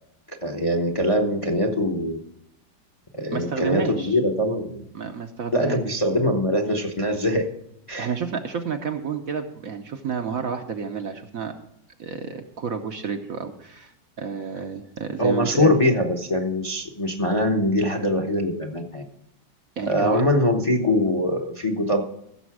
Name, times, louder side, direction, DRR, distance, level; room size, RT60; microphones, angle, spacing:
voice 1, 0.4-2.2 3.1-4.8 5.5-7.5 7.9-8.1 15.2-19.0 19.9-22.0, left 1 dB, 25° left, 4 dB, 0.8 m, -22 dB
voice 2, 3.3-4.2 4.9-5.8 8.0-11.5 12.0-13.9 14.2-15.8 19.8-20.2, right 6 dB, 55° right, 5 dB, 1.1 m, -30 dB
15.5 x 6.9 x 4.8 m, 0.81 s
omnidirectional pair, 2.0 m